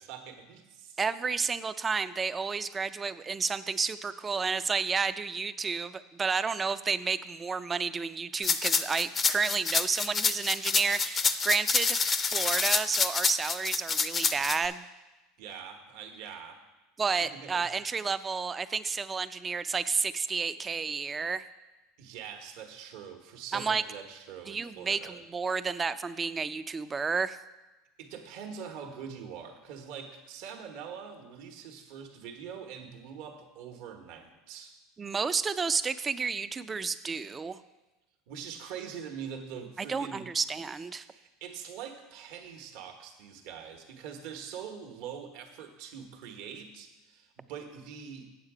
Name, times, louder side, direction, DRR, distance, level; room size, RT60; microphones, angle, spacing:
voice 1, 0.0-1.0 15.4-16.6 17.2-17.7 22.0-25.2 28.0-34.8 38.3-40.3 41.0-48.3, right 7 dB, 70° right, 4 dB, 1.2 m, -43 dB
voice 2, 1.0-12.0 12.3-14.8 17.0-21.4 23.5-23.8 24.5-27.4 35.0-37.6 39.8-41.1, right 5 dB, 20° right, 13 dB, 0.4 m, -31 dB
sound 1, 8.4-14.6, left 5 dB, 30° left, 0.5 m, -27 dB
8.2 x 7.2 x 4.9 m, 1.1 s
supercardioid pair, 110°, 0 cm